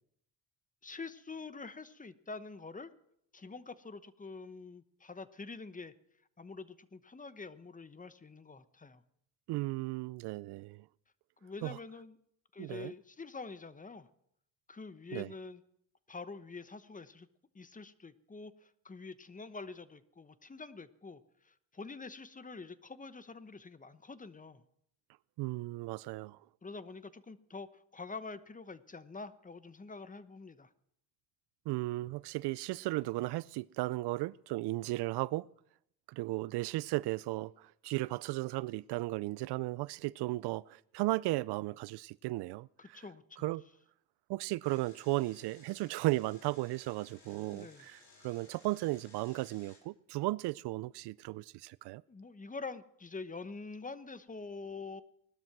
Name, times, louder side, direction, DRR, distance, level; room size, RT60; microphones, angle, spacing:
voice 1, 0.8-2.9 3.3-5.9 6.4-9.0 11.4-12.2 12.5-14.1 14.7-15.6 16.1-17.3 17.5-24.6 26.6-30.7 42.8-43.5 47.5-47.9 52.1-55.0, left 4 dB, 20° left, 1.0 m, -46 dB
voice 2, 9.5-10.9 11.6-11.8 12.6-12.9 15.1-15.3 25.4-26.4 31.7-35.5 36.1-43.0 43.4-43.6 44.3-52.0, right 19 dB, 80° right, 0.5 m, -35 dB
Engine, 44.6-49.8, left 3 dB, 45° left, 6.5 m, -60 dB
19.0 x 12.5 x 6.0 m
cardioid pair, 85°, 39 cm